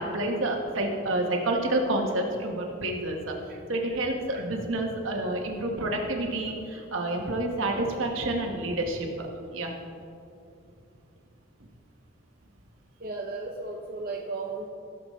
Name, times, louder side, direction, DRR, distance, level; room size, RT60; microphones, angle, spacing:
voice 1, 0.0-3.3 3.7-9.3 9.5-9.7, right 1 dB, 70° right, 2 dB, 1.3 m, -29 dB
voice 2, 13.0-14.7, right 3 dB, 45° right, -1 dB, 0.7 m, -35 dB
15.5 x 6.9 x 3.2 m, 2.6 s
head